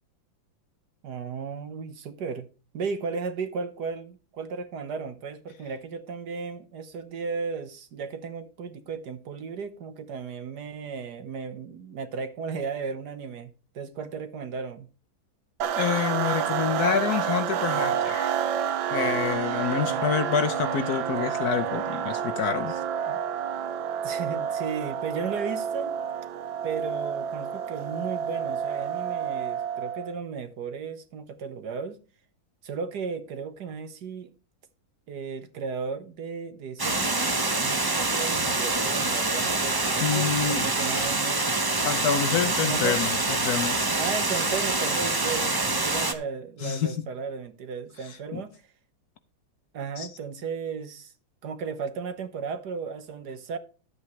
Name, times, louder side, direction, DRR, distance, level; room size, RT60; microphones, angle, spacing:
voice 1, 1.0-2.5 2.7-14.9 19.9-20.1 23.0-23.2 24.0-26.0 26.6-32.0 32.6-34.3 35.1-41.5 42.6-43.0 44.0-48.5 49.7-51.1 51.4-53.6, right 5 dB, 60° right, 1.5 m, -35 dB
sound 1, 15.6-30.2, right 8 dB, 80° right, 1.6 m, -29 dB
voice 2, 15.8-18.4 18.9-22.8 40.0-40.7 41.8-43.8 46.6-47.0 48.0-48.4 50.0-50.1, left 8 dB, 60° left, 1.1 m, -27 dB
Water, 36.8-46.1, right 2 dB, 35° right, 0.3 m, -26 dB
12.0 x 8.5 x 3.2 m
omnidirectional pair, 2.1 m